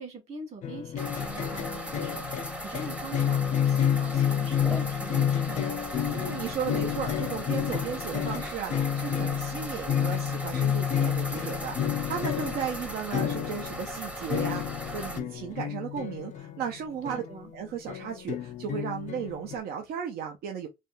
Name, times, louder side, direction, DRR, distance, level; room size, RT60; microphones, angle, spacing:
voice 1, 0.0-5.8 17.0-17.5, right 3 dB, 40° right, 1.6 m, -43 dB
sound 1, 0.6-17.6 17.9-19.6, left 9 dB, 45° left, 0.5 m, -30 dB
sound 2, 1.0-15.2, equal, 5° right, 0.7 m, -38 dB
sound 3, 1.4-16.4, right 3 dB, 85° right, 2.1 m, -55 dB
voice 2, 6.1-17.2 17.5-20.7, right 8 dB, 65° right, 0.6 m, -35 dB
3.4 x 2.2 x 2.5 m
cardioid pair, 110°, 17 cm